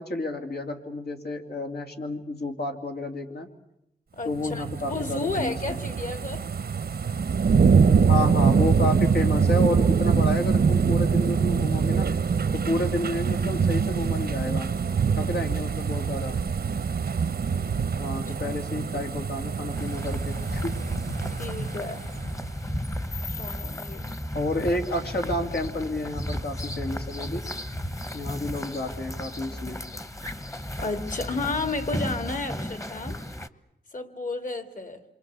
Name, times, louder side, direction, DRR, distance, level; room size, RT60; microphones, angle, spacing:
voice 1, 0.0-3.5 4.2-5.7 8.1-12.1 12.5-14.7 15.2-16.4 18.0-20.9 24.3-27.4 28.1-29.8, left 1 dB, 80° left, 4 dB, 2.8 m, -30 dB
voice 2, 4.1-6.4 15.9-16.2 18.3-18.7 21.4-22.1 23.4-24.1 29.9-30.0 30.8-33.2 33.9-35.0, left 3 dB, 55° left, 9 dB, 2.4 m, -32 dB
sound 1, 4.4-22.5 22.9-23.0, right 6 dB, 80° right, 0.9 m, -24 dB
sound 2, 19.7-33.5, left 1 dB, 20° left, 1.1 m, -34 dB
28.5 x 24.0 x 8.2 m, 0.82 s
wide cardioid pair, 90°, 16 cm